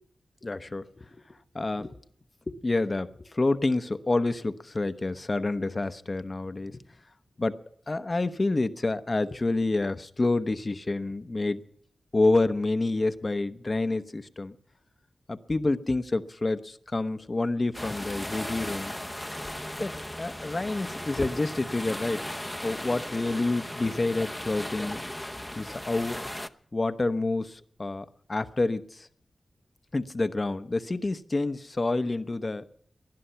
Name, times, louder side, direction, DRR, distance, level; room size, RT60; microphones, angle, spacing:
voice 1, 0.4-1.9 2.5-6.8 7.4-7.6 7.9-11.6 12.1-14.5 15.3-18.9 19.8-22.2 22.6-25.0 25.6-26.2 26.7-29.1 29.9-32.6, left 2 dB, 45° left, 10 dB, 0.9 m, -28 dB
sound 1, 17.7-26.5, left 1 dB, 10° left, 0.7 m, -36 dB
19.5 x 11.5 x 5.8 m, 0.68 s
cardioid pair, 45°, 0 cm